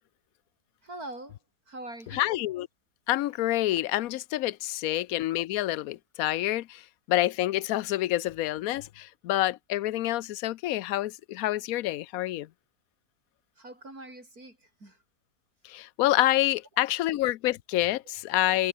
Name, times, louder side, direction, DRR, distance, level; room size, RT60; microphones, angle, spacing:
voice 1, 0.8-1.4 1.7-2.3 5.0-5.1 13.6-15.0 16.8-16.9, right 1 dB, 60° right, 7.5 m, -43 dB
voice 2, 2.1-2.7 3.1-12.5 15.6-18.7, left 15 dB, 70° left, 1.0 m, -27 dB
omnidirectional pair, 1.8 m